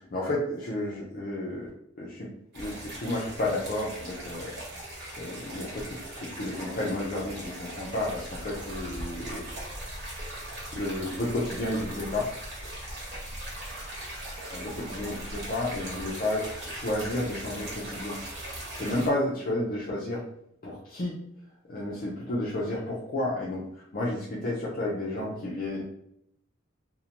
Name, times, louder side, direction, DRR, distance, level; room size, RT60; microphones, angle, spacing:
voice 1, 0.1-1.7 2.0-2.3 2.5-4.5 5.2-9.4 10.7-12.3 14.3-20.2 20.6-21.2 21.7-23.6 23.9-25.8, left 1 dB, 45° left, -5 dB, 0.5 m, -32 dB
sound 1, 2.5-19.1, right 1 dB, 60° right, 1.1 m, -39 dB
2.6 x 2.1 x 2.8 m, 0.74 s
head